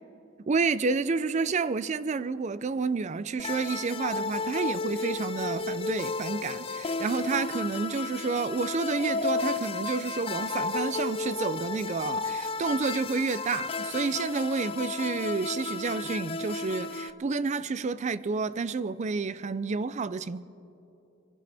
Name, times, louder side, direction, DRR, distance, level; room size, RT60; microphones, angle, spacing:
voice 1, 0.5-20.4, right 4 dB, 35° right, 0.4 m, -30 dB
sound 1, 3.4-17.1, left 3 dB, 30° left, 0.4 m, -33 dB
23.0 x 16.0 x 3.4 m
head